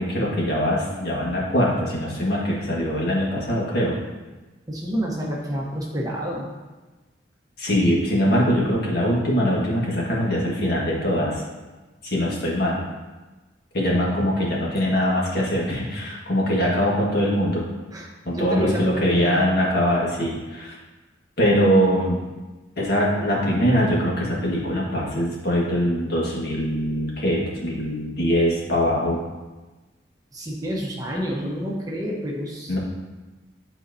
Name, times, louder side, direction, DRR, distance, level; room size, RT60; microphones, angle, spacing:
voice 1, 0.0-4.0 7.6-11.4 12.0-12.8 13.7-17.6 18.3-20.8 21.4-22.2 22.8-29.2 32.7-32.8, equal, 55° left, -4 dB, 1.6 m, -22 dB
voice 2, 4.7-6.5 17.9-18.1 18.3-19.5 30.3-32.7, equal, 20° right, -3 dB, 1.0 m, -28 dB
10.5 x 4.3 x 2.7 m, 1.2 s
head